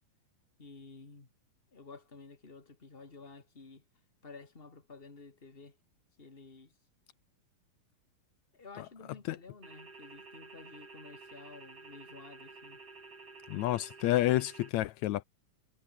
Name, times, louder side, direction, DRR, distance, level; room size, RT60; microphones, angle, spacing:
voice 1, 0.6-1.3 1.7-3.8 4.2-5.8 6.2-6.7 8.5-12.8, left 4 dB, 20° left, 2.9 m, -52 dB
sound 1, 9.6-14.7, right 3 dB, 45° right, 6.3 m, -51 dB
voice 2, 13.5-15.2, left 15 dB, 75° left, 1.8 m, -29 dB
omnidirectional pair, 3.7 m